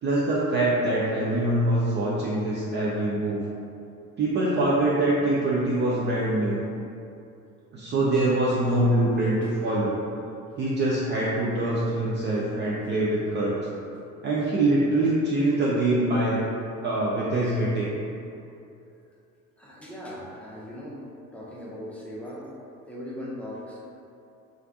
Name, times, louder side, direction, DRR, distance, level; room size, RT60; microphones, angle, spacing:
voice 1, 0.0-3.4 4.2-6.6 7.7-10.0 10.6-13.6 14.2-16.4 16.8-17.9, right 1 dB, 25° right, -6 dB, 0.5 m, -24 dB
voice 2, 19.6-21.0 21.3-22.5 22.9-23.8, equal, 5° left, -7 dB, 0.7 m, -38 dB
3.2 x 2.5 x 3.8 m, 2.7 s
figure-of-eight pair, 60°, 43 cm